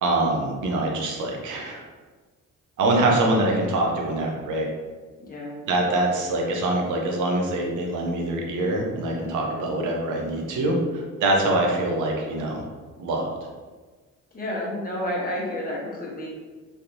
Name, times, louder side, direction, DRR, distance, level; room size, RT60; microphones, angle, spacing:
voice 1, 0.0-1.8 2.8-4.7 5.7-12.6 13.0-13.3, right 2 dB, 80° right, 0 dB, 0.8 m, -24 dB
voice 2, 5.2-5.5 14.3-16.3, left 1 dB, 30° left, -4 dB, 1.1 m, -30 dB
3.4 x 2.7 x 2.6 m, 1.4 s
cardioid pair, 90°, 30 cm